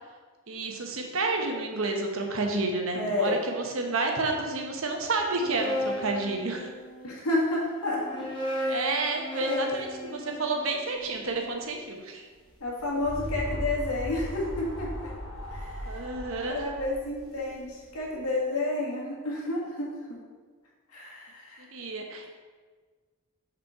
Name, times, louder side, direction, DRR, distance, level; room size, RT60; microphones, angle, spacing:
voice 1, 0.5-6.7 8.7-12.2 15.9-16.6 21.6-22.3, right 3 dB, 65° right, 2 dB, 1.0 m, -30 dB
voice 2, 2.9-3.4 7.0-8.3 8.6-8.8 9.3-9.6 12.6-15.1 15.5-16.0 16.5-20.2 20.9-21.6, left 2 dB, 80° left, -3 dB, 1.8 m, -30 dB
sound 1, 5.2-7.1 7.9-12.0, left 1 dB, 20° left, 0.9 m, -35 dB
sound 2, 12.5-18.1, equal, 65° left, 1.1 m, -37 dB
5.4 x 4.3 x 5.6 m, 1.4 s
head